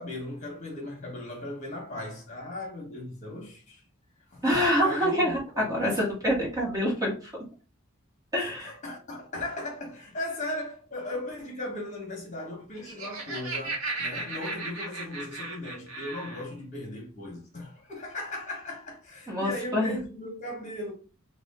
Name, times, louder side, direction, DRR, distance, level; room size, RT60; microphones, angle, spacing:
voice 1, 0.0-3.8 4.3-4.4 4.8-5.4 5.8-6.0 8.4-20.9, left 1 dB, 35° left, 1.3 m, -37 dB
voice 2, 4.4-7.3 8.3-8.7 19.3-19.9, equal, 15° right, 1.4 m, -26 dB
Laughter, 12.6-16.5, right 3 dB, 85° right, 1.1 m, -36 dB
3.5 x 2.4 x 3.6 m
head